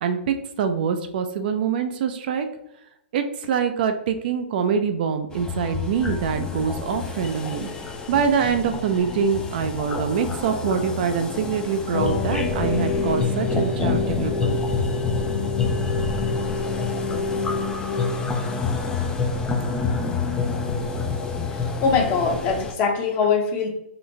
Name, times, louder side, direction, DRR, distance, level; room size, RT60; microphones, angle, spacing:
voice 1, 0.0-2.5 3.1-7.7 8.1-14.6, right 6 dB, 50° right, 7 dB, 0.4 m, -24 dB
sound 1, 5.3-22.7, left 4 dB, 10° left, 0.4 m, -28 dB
sound 2, 11.9-19.0, left 4 dB, 80° left, 0.7 m, -29 dB
voice 2, 21.5-23.7, left 5 dB, 30° left, 2 dB, 0.8 m, -22 dB
3.9 x 2.5 x 3.1 m, 0.80 s
hypercardioid pair, 125°, 6 cm